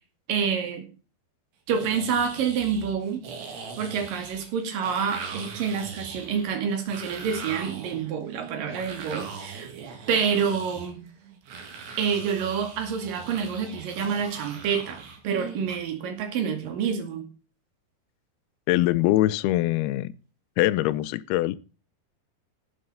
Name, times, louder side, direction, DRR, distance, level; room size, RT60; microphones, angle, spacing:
voice 1, 0.3-0.8 1.7-3.2 3.8-9.7 10.1-11.0 12.0-17.3, right 6 dB, 55° right, 3.7 m, -28 dB
sound 1, 1.7-15.8, right 5 dB, 70° right, 4.7 m, -40 dB
voice 2, 18.7-20.1 20.6-21.6, left 16 dB, 80° left, 2.4 m, -23 dB
13.0 x 7.9 x 5.6 m
omnidirectional pair, 5.0 m